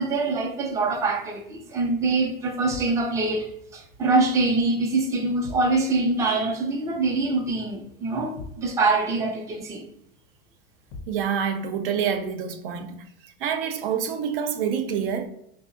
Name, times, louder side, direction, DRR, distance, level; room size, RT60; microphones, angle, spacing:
voice 1, 0.0-9.9, right 3 dB, 10° right, 0.4 m, -24 dB
sound 1, 2.7-3.1 5.4-5.8 8.4-8.7 10.9-11.3, left 2 dB, 45° left, 0.7 m, -40 dB
voice 2, 11.1-13.0 13.4-15.3, right 7 dB, 70° right, 0.6 m, -27 dB
3.5 x 2.0 x 3.7 m
supercardioid pair, 120°, 29 cm